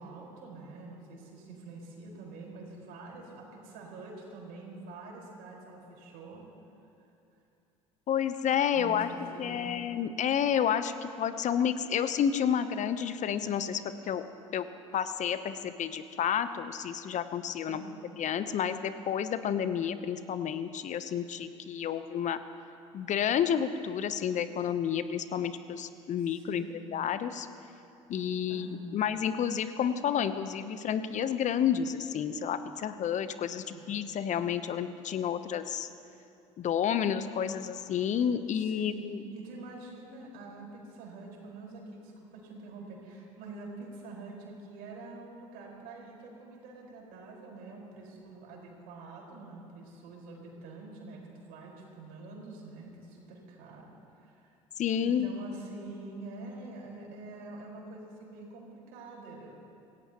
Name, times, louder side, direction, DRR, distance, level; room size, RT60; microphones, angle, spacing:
voice 1, 0.0-6.4 7.0-7.4 8.7-9.8 17.6-18.0 26.2-26.8 28.5-28.9 33.6-33.9 38.5-51.2 51.5-53.9 54.1-54.5 55.0-59.5, right 3 dB, 65° right, -2 dB, 5.0 m, -46 dB
voice 2, 8.1-9.1 9.4-14.2 14.5-14.7 14.9-17.8 18.2-22.4 22.9-26.6 26.9-27.5 28.1-35.9 36.6-39.2 54.8-55.3, left 8 dB, 45° left, 11 dB, 0.9 m, -30 dB
26.5 x 17.0 x 3.0 m, 2.7 s
hypercardioid pair, 60°, 17 cm